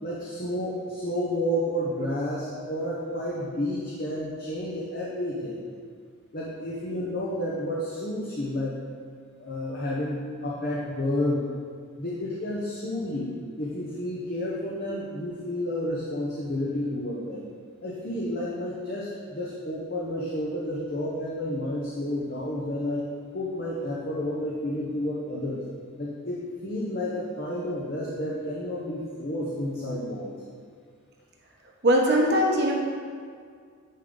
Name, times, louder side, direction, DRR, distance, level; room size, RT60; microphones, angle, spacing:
voice 1, 0.0-5.6 6.3-8.8 9.4-11.5 12.0-17.4 17.8-23.1 23.3-25.6 26.0-30.4, left 1 dB, 45° left, -5 dB, 0.9 m, -31 dB
voice 2, 31.8-32.7, equal, 50° right, -1 dB, 1.1 m, -20 dB
9.4 x 5.0 x 3.9 m, 2.1 s
head